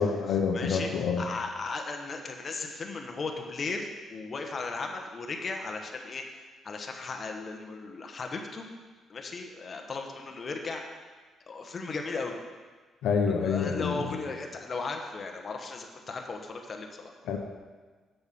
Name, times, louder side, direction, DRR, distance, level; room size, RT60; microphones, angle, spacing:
voice 1, 0.0-1.2 13.0-14.0 17.2-17.4, left 6 dB, 85° left, 2 dB, 1.0 m, -27 dB
voice 2, 0.5-0.9 1.2-6.2 6.6-8.7 9.1-10.8 11.5-12.3 13.3-17.1, left 3 dB, 40° left, 3 dB, 1.1 m, -36 dB
7.2 x 6.8 x 6.0 m, 1.4 s
cardioid pair, 90°, 0 cm